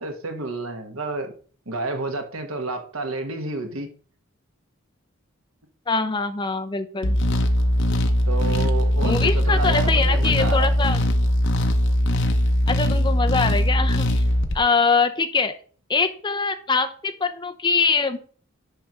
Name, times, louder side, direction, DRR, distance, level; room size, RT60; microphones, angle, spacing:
voice 1, 0.0-1.3 1.7-3.9 8.3-10.8, right 3 dB, 85° right, 1.5 m, -30 dB
voice 2, 5.9-7.2 9.0-11.0 12.7-14.1 14.5-15.6 15.9-18.2, left 4 dB, 20° left, 0.7 m, -23 dB
sound 1, 7.0-14.6, left 1 dB, 60° left, 1.0 m, -20 dB
9.9 x 3.4 x 6.1 m
head